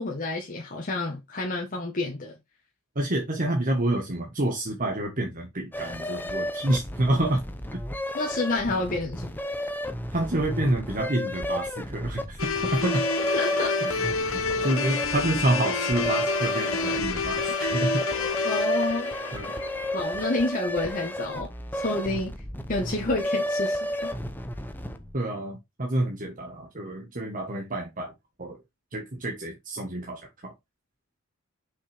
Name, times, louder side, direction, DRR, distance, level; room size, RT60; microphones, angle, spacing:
voice 1, 0.0-2.3 8.1-9.3 13.3-13.8 18.4-19.1 19.9-22.3 22.7-24.1, left 2 dB, 40° left, 1.4 m, -29 dB
voice 2, 2.9-7.4 10.1-13.0 13.8-18.4 19.3-19.5 25.1-28.1 28.4-28.6 28.9-30.5, right 1 dB, 40° right, 1.4 m, -28 dB
sound 1, 5.7-25.2, equal, 10° left, 0.8 m, -32 dB
sound 2, 12.4-20.5, left 4 dB, 70° left, 1.0 m, -29 dB
6.4 x 5.6 x 3.5 m
head